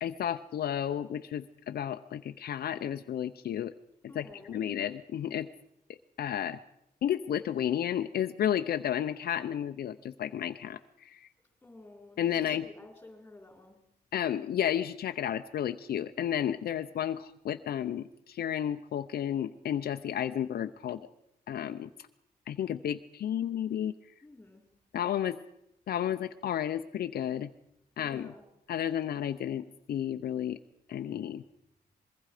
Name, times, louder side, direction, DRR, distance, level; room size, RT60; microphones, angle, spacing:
voice 1, 0.0-3.7 4.0-5.5 6.2-6.6 7.0-11.3 12.2-12.7 14.1-21.0 21.5-21.9 22.5-23.9 24.9-25.4 25.9-27.5 28.0-28.3 28.7-30.6 30.9-31.4, left 10 dB, 65° left, 8 dB, 0.7 m, -32 dB
voice 2, 4.1-4.6 11.6-13.8 24.2-24.6 28.0-28.4, left 2 dB, 10° left, 2 dB, 5.1 m, -52 dB
24.5 x 22.0 x 5.0 m, 0.80 s
wide cardioid pair, 155°, 17 cm